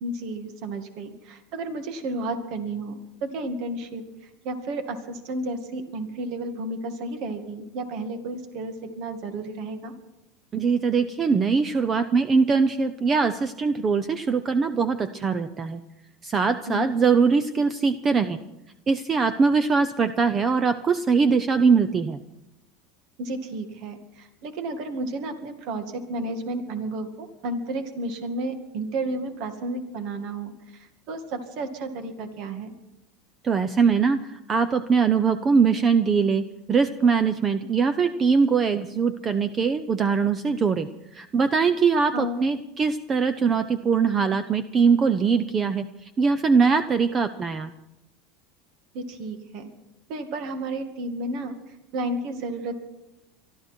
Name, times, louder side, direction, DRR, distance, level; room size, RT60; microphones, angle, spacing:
voice 1, 0.0-4.0 4.4-9.9 16.7-16.9 23.2-32.7 42.1-42.4 48.9-49.7 50.1-51.6 51.9-52.8, right 2 dB, 60° right, 7 dB, 2.1 m, -32 dB
voice 2, 10.5-15.8 16.2-18.4 18.9-22.2 33.4-45.8 46.2-47.7, right 5 dB, 30° right, 12 dB, 0.7 m, -22 dB
23.5 x 13.0 x 4.5 m, 0.91 s
supercardioid pair, 115°, 0 cm